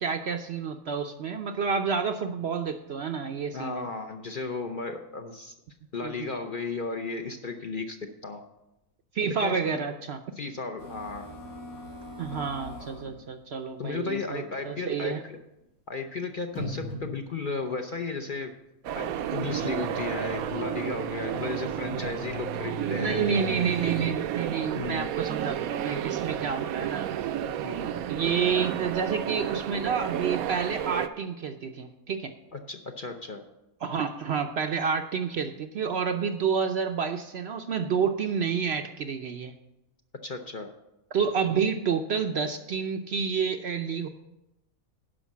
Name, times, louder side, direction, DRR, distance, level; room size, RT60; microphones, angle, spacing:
voice 1, 0.0-3.8 6.0-6.3 9.1-10.2 12.2-15.2 22.8-27.1 28.1-32.3 33.8-39.5 41.1-44.1, right 6 dB, 60° right, 7 dB, 0.7 m, -29 dB
voice 2, 3.5-5.5 5.9-8.4 9.4-9.8 10.3-11.3 13.8-15.4 15.9-18.5 18.9-23.2 24.7-25.1 27.6-27.9 32.5-33.4 40.2-40.7, left 4 dB, 45° left, 5 dB, 0.7 m, -34 dB
sound 1, 10.8-13.2 14.0-14.1 14.5-14.6 15.6-15.7 16.4-17.5 19.0-24.1, left 1 dB, 85° left, 2.4 m, -40 dB
sound 2, 18.8-31.1, right 10 dB, 80° right, 1.0 m, -32 dB
11.5 x 5.3 x 7.2 m, 0.92 s
omnidirectional pair, 1.5 m